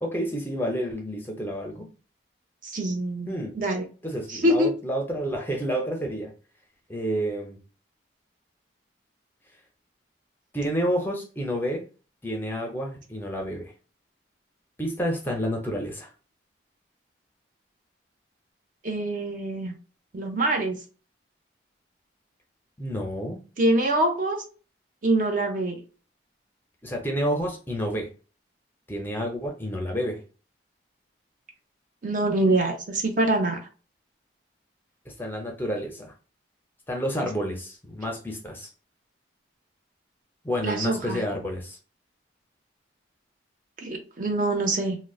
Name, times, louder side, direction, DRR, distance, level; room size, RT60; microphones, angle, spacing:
voice 1, 0.0-1.9 3.3-3.6 4.0-6.3 6.9-7.6 10.5-11.8 12.2-13.7 14.8-16.1 22.8-23.4 26.8-28.1 28.9-30.2 35.1-36.1 36.9-38.7 40.4-41.8, equal, 10° left, 1 dB, 0.5 m, -29 dB
voice 2, 2.6-3.8 4.3-4.7 18.8-19.7 20.1-20.8 23.6-24.4 25.0-25.8 32.0-33.6 40.6-41.2 43.8-45.0, right 1 dB, 45° right, 3 dB, 0.6 m, -25 dB
3.7 x 2.1 x 2.3 m, 0.35 s
head